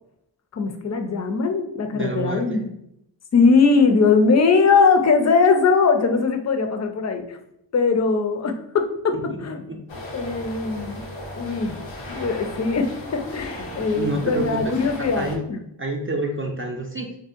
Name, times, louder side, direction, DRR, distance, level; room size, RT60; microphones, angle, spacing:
voice 1, 0.5-2.7 3.3-7.4 7.7-9.2 9.4-9.6 10.1-11.0 11.4-11.8 12.1-15.6, left 4 dB, 40° left, 6 dB, 0.5 m, -20 dB
voice 2, 1.9-2.7 9.1-9.8 13.7-15.4 15.8-17.1, right 2 dB, 30° right, 1 dB, 0.4 m, -29 dB
sound 1, 9.9-15.4, left 1 dB, 85° left, 0.7 m, -36 dB
2.6 x 2.1 x 2.5 m, 0.77 s
cardioid pair, 40°, 44 cm